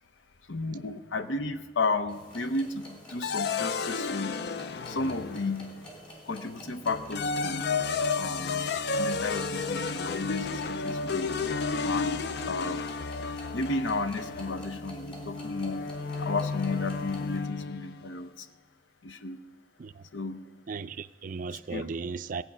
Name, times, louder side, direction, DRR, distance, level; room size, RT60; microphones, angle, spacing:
voice 1, 0.5-4.4 4.9-5.7 6.3-7.7 8.1-11.3 11.8-12.8 13.5-15.9 16.2-18.5 19.0-19.4 20.1-20.4 21.7-21.9, left 3 dB, 85° left, 0.7 m, -33 dB
sound 1, 2.1-17.4, equal, 30° left, 3.5 m, -49 dB
sound 2, 3.2-5.8 6.9-18.0, left 4 dB, 60° left, 0.4 m, -32 dB
voice 2, 20.7-22.4, right 4 dB, 45° right, 0.4 m, -36 dB
15.5 x 9.1 x 6.1 m
head